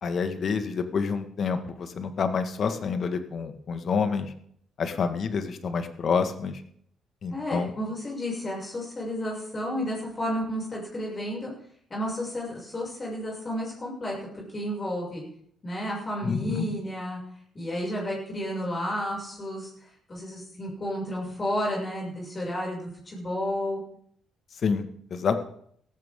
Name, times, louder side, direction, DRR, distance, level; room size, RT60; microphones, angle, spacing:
voice 1, 0.0-4.3 4.8-6.6 7.2-7.7 16.2-16.7 24.6-25.4, left 5 dB, 55° left, 8 dB, 1.7 m, -28 dB
voice 2, 7.3-11.5 11.9-15.2 15.6-17.2 17.5-23.8, equal, 30° left, -3 dB, 6.6 m, -32 dB
17.0 x 15.0 x 3.8 m, 0.66 s
cardioid pair, 90°, 0 cm